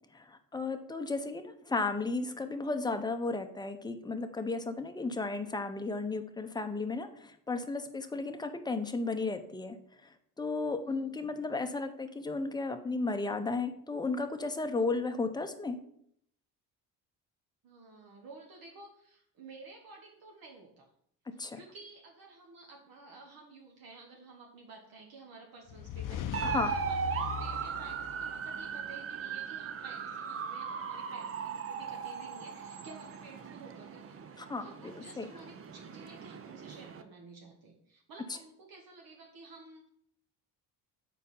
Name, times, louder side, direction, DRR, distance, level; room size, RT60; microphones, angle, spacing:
voice 1, 0.1-9.8 10.0-15.8 21.4-21.6 26.4-26.7 34.4-34.6 35.2-35.3, left 3 dB, 10° left, 7 dB, 0.6 m, -34 dB
voice 2, 10.8-11.4 17.6-20.9 21.3-34.3 34.6-39.9, right 3 dB, 60° right, 0 dB, 1.2 m, -52 dB
sound 1, 25.7-28.7, left 10 dB, 55° left, 0.6 m, -40 dB
sound 2, 26.3-37.0, right 6 dB, 35° right, 0.5 m, -38 dB
4.4 x 4.1 x 5.4 m, 0.70 s
supercardioid pair, 75°, 39 cm